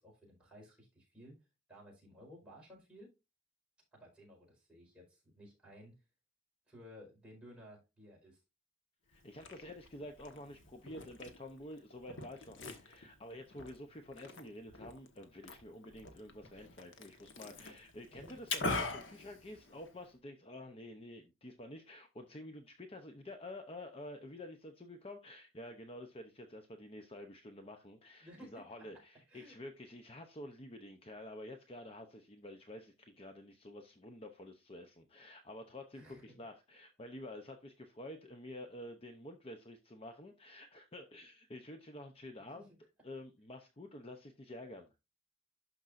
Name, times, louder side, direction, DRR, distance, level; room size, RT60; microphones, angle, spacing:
voice 1, 0.0-1.3 1.7-3.1 3.9-6.0 6.7-8.4 18.1-18.4 28.2-28.6 29.3-29.6 35.9-36.3 42.4-42.8, equal, 5° right, 4.5 m, -56 dB
Liquid, 9.1-20.1, left 3 dB, 65° left, 1.4 m, -44 dB
voice 2, 9.1-42.7 43.0-44.9, left 1 dB, 30° left, 0.7 m, -49 dB
12.0 x 5.3 x 2.5 m
head